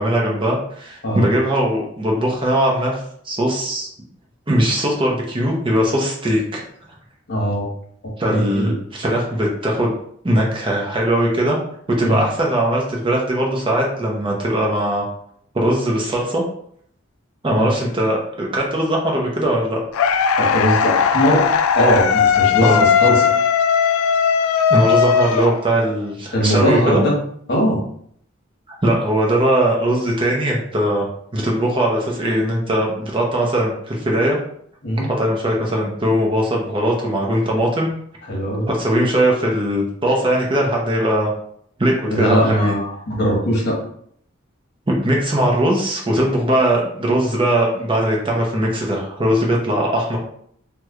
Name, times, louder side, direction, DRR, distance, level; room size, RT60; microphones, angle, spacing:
voice 1, 0.0-3.9 4.5-6.6 8.2-9.9 10.2-11.6 11.9-15.1 15.5-16.4 17.4-19.8 22.6-22.8 24.7-27.0 28.8-31.1 31.3-34.4 35.0-37.9 38.7-41.3 41.8-42.7 44.9-50.2, right 1 dB, 25° right, -2 dB, 0.5 m, -20 dB
voice 2, 7.3-7.7 8.0-8.7 12.0-12.2 17.5-17.7 20.4-21.5 21.7-23.2 26.3-27.2 27.5-27.8 34.8-35.1 38.3-38.7 42.1-43.8, equal, 50° left, -2 dB, 1.0 m, -20 dB
sound 1, 19.9-26.0, left 7 dB, 90° left, 0.3 m, -17 dB
3.1 x 2.2 x 3.5 m, 0.65 s
head